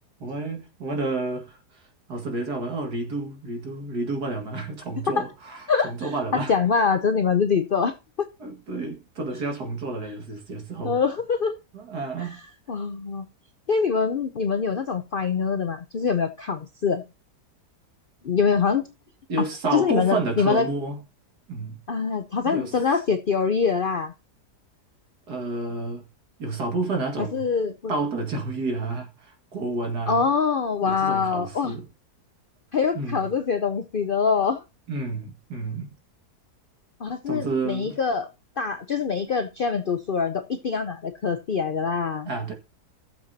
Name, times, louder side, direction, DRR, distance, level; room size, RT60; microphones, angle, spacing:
voice 1, 0.2-1.6 2.1-6.5 8.4-11.0 11.7-12.4 19.3-21.0 21.5-21.8 22.4-22.7 25.3-26.0 26.4-27.4 27.9-30.3 30.8-31.9 32.9-33.3 34.9-35.9 37.3-38.0 42.3-42.5, right 3 dB, 75° right, 2.6 m, -30 dB
voice 2, 5.7-8.3 10.8-11.6 12.2-12.4 12.7-13.2 13.7-17.0 18.2-18.9 19.7-20.7 21.9-24.1 27.2-27.9 30.1-31.8 32.7-34.6 37.0-38.3 38.6-42.3, left 5 dB, 60° left, 0.5 m, -24 dB
15.5 x 7.3 x 2.8 m
omnidirectional pair, 1.7 m